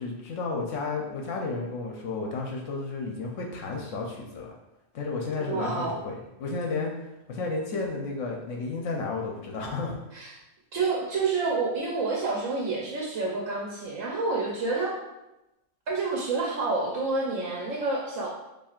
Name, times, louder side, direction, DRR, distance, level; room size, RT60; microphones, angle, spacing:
voice 1, 0.0-4.5 4.9-6.9 7.3-10.0, left 3 dB, 75° left, 0 dB, 1.0 m, -32 dB
voice 2, 5.3-5.9 10.1-10.3 10.7-15.0 15.9-18.3, right 3 dB, 85° right, -3 dB, 1.1 m, -28 dB
7.1 x 2.7 x 2.4 m, 0.95 s
omnidirectional pair, 1.3 m